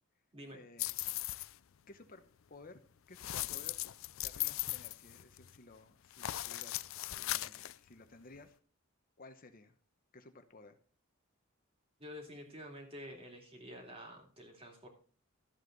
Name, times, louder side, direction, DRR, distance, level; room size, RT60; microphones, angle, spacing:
voice 1, 0.5-1.1 1.9-2.2 2.5-2.8 3.1-3.8 4.2-8.6 9.2-9.8 10.1-10.8, left 3 dB, 40° left, 8 dB, 0.9 m, -56 dB
sound 1, 0.8-1.6 3.1-5.6 6.1-7.8, left 16 dB, 65° left, 0.4 m, -38 dB
voice 2, 12.0-14.9, equal, 25° right, 2 dB, 2.7 m, -49 dB
13.0 x 8.1 x 3.9 m, 0.43 s
head